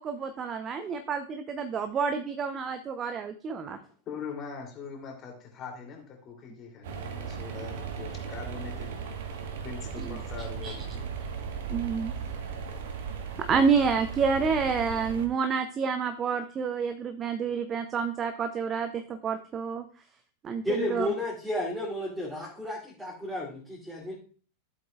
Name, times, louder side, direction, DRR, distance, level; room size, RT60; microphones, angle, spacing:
voice 1, 0.0-3.8 10.0-10.2 10.6-10.7 11.7-12.1 13.4-19.9 20.4-21.1, right 6 dB, 25° right, 9 dB, 0.6 m, -29 dB
voice 2, 4.1-9.0 9.6-11.0, left 5 dB, 30° left, 1 dB, 2.9 m, -42 dB
sound 1, 6.8-15.3, right 6 dB, 55° right, 1.3 m, -37 dB
voice 3, 20.6-24.1, left 1 dB, ahead, -8 dB, 2.6 m, -32 dB
14.0 x 7.8 x 2.4 m, 0.41 s
figure-of-eight pair, 90°, 0 cm